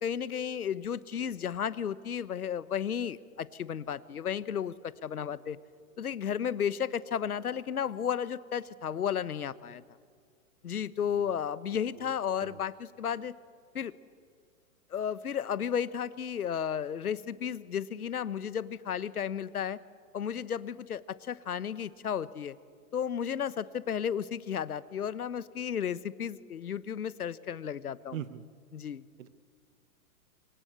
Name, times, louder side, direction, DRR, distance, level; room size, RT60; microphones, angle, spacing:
voice 1, 0.0-5.6 6.0-9.8 10.6-13.3 13.7-13.9 14.9-19.8 20.1-22.6 22.9-28.2 28.7-29.0, left 8 dB, 90° left, 18 dB, 1.0 m, -33 dB
voice 2, 28.1-28.4 29.2-29.3, right 10 dB, 65° right, 15 dB, 1.3 m, -41 dB
25.5 x 22.0 x 8.1 m, 2.2 s
hypercardioid pair, 120°, 43 cm